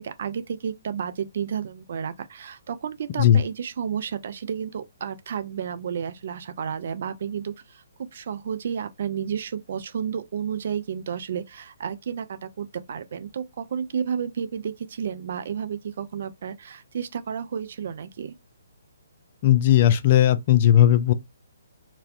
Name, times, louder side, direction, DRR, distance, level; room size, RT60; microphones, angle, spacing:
voice 1, 0.0-18.3, right 7 dB, 50° right, 0.3 m, -31 dB
voice 2, 19.4-21.1, left 11 dB, 35° left, 0.3 m, -17 dB
2.5 x 2.0 x 2.4 m
figure-of-eight pair, 130°, 0 cm